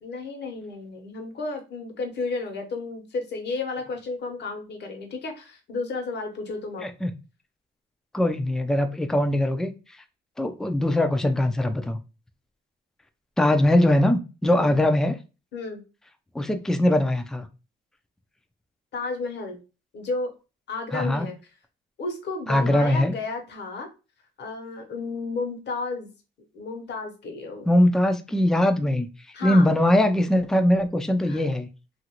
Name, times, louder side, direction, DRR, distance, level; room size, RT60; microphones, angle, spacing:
voice 1, 0.0-6.9 14.4-14.7 15.5-15.8 18.9-19.6 19.9-20.3 20.7-21.4 22.0-23.9 24.4-26.1 26.5-27.7 29.3-29.7 31.2-31.4, left 3 dB, 60° left, 1.0 m, -32 dB
voice 2, 8.1-9.7 10.4-12.0 13.4-15.2 16.3-17.5 20.9-21.3 22.5-23.1 27.7-29.1 29.4-31.7, left 1 dB, ahead, 0.4 m, -21 dB
2.9 x 2.5 x 2.9 m
cardioid pair, 90°, 20 cm